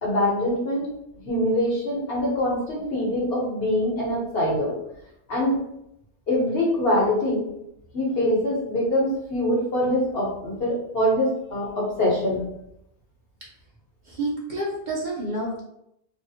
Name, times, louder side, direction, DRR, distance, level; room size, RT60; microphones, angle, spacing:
voice 1, 0.0-0.9 1.2-4.8 5.3-5.6 6.3-7.4 7.9-12.4, left 1 dB, 60° left, -5 dB, 1.2 m, -24 dB
voice 2, 14.0-15.6, right 1 dB, 50° right, -4 dB, 0.7 m, -29 dB
3.4 x 2.0 x 2.7 m, 0.81 s
omnidirectional pair, 1.1 m